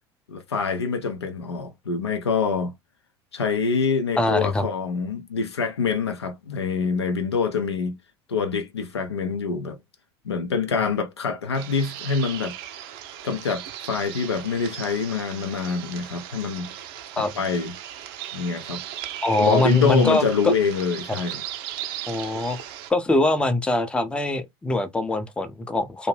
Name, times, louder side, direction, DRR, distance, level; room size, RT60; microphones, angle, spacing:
voice 1, 0.3-2.7 3.3-7.9 8.3-9.8 10.2-12.5 13.2-16.7 17.2-17.7 18.3-18.8 19.3-21.4, left 5 dB, 80° left, 0.5 m, -25 dB
voice 2, 4.2-4.7 17.2-17.3 19.2-20.5 22.1-22.6 22.9-26.1, left 2 dB, 5° left, 0.5 m, -23 dB
sound 1, 11.5-22.9, right 11 dB, 60° right, 0.5 m, -37 dB
2.5 x 2.1 x 3.1 m
figure-of-eight pair, 70°, 14 cm